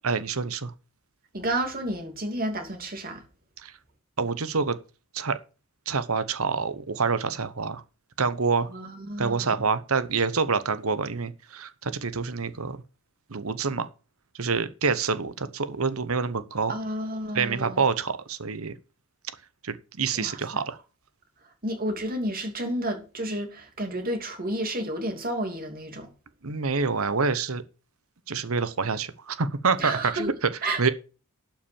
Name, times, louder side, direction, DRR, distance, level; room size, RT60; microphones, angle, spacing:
voice 1, 0.0-0.7 3.6-3.7 4.2-4.8 5.1-5.4 5.9-7.8 8.2-8.7 9.2-12.8 13.3-13.9 14.3-16.7 17.3-18.7 19.6-20.8 26.4-27.6 28.3-30.5 30.8-30.9, right 5 dB, 75° right, 1.1 m, -27 dB
voice 2, 1.3-3.2 8.7-9.6 16.7-17.8 20.2-20.6 21.6-26.1 29.8-30.3 30.6-30.9, right 1 dB, 45° right, 2.9 m, -31 dB
11.5 x 6.0 x 7.0 m
head